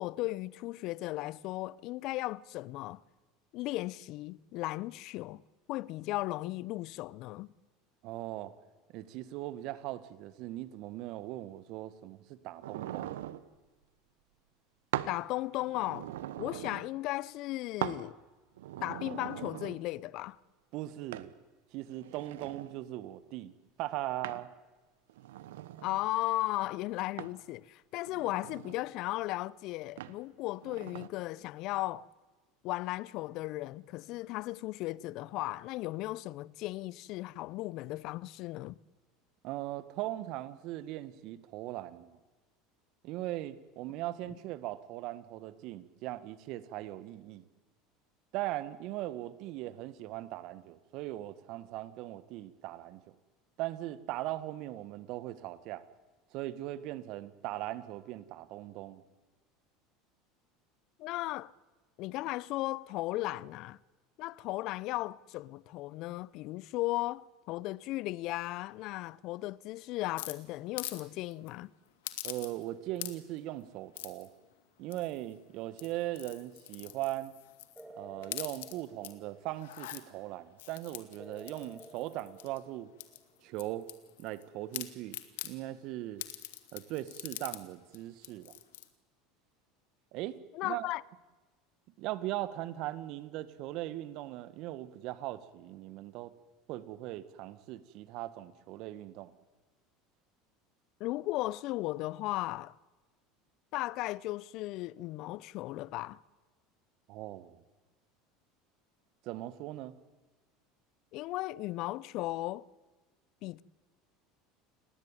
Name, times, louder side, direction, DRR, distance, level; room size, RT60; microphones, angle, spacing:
voice 1, 0.0-3.0 3.5-5.4 5.7-7.5 15.1-16.1 16.4-18.2 18.8-20.4 25.8-32.1 32.6-38.8 61.0-61.5 62.0-63.8 64.2-71.7 90.5-91.0 101.0-102.7 103.7-106.2 111.1-112.6 113.4-113.6, left 18 dB, 60° left, 0.7 m, -36 dB
voice 2, 8.0-8.5 8.9-13.3 20.7-21.3 21.7-23.5 23.8-24.5 39.4-42.2 43.0-47.5 48.3-53.2 53.6-55.8 56.3-59.0 72.2-74.3 74.8-77.3 78.0-82.9 83.4-83.9 84.2-86.3 86.7-88.6 90.1-90.9 92.0-96.3 96.7-99.4 107.1-107.6 109.2-110.0, right 15 dB, 60° right, 1.7 m, -39 dB
sound 1, 12.6-13.4 14.9-15.2 15.6-16.9 17.8-18.0 18.6-19.8 21.1-21.3 21.9-22.8 24.2-24.5 25.1-26.1 27.2-27.4 28.1-28.8 30.0-30.2 30.6-31.1, right 13 dB, 75° right, 1.2 m, -40 dB
sound 2, 70.2-71.0 71.3-71.5 72.0-72.7 72.9-73.4 73.9-74.3 74.9-75.3 75.7-77.8 78.2-79.1 79.5-80.0 80.6-82.6 83.0-84.4 84.7-85.5 86.2-87.6 87.9-88.0 88.2-88.9, left 15 dB, 75° left, 2.2 m, -43 dB
sound 3, 77.8-79.8 81.2-83.3, right 1 dB, 5° right, 3.3 m, -53 dB
29.5 x 19.5 x 9.1 m
hypercardioid pair, 80°, 0 cm